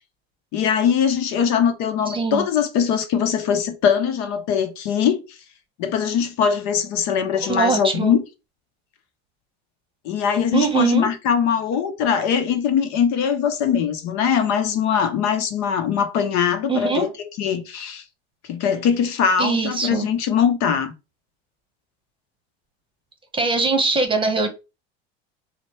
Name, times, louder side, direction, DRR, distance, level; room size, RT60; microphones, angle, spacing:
voice 1, 0.5-5.2 5.8-8.2 10.0-17.1 17.4-18.0 18.5-20.9, left 7 dB, 60° left, 0.8 m, -21 dB
voice 2, 2.1-2.4 7.4-8.1 10.5-11.1 16.7-17.1 19.4-20.1 23.3-24.5, right 4 dB, 15° right, 1.0 m, -22 dB
4.3 x 2.2 x 4.2 m
supercardioid pair, 100°, 32 cm